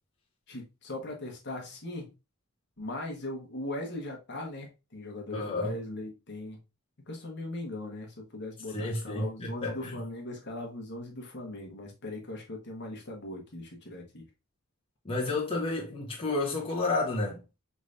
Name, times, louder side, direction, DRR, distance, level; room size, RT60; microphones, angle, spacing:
voice 1, 0.5-2.1 2.8-6.6 7.1-14.2, left 2 dB, 55° left, 1.2 m, -39 dB
voice 2, 5.3-5.7 8.7-10.0 15.0-17.4, left 2 dB, 25° left, 1.1 m, -31 dB
5.1 x 3.3 x 2.6 m
head